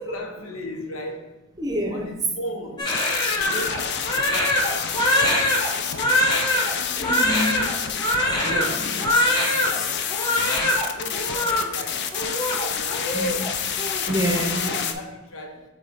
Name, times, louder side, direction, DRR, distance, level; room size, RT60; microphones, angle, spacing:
voice 1, 0.0-1.4 1.9-3.0 3.2-6.5 6.7-7.1 7.5-13.4 14.0-14.1 14.7-15.7, left 1 dB, 90° left, 3 dB, 0.9 m, -38 dB
voice 2, 1.6-2.1 7.0-7.8 8.4-9.1 13.1-13.5 14.1-14.8, equal, 20° right, 3 dB, 0.7 m, -28 dB
sound 1, 2.8-14.9, left 7 dB, 55° left, 0.5 m, -28 dB
Crying sobbing, 2.8-9.8 10.1-10.9 11.1-11.6 12.1-13.5 13.8-14.0 14.3-14.8, left 1 dB, 20° left, 0.9 m, -23 dB
7.7 x 3.2 x 4.0 m, 1.1 s
head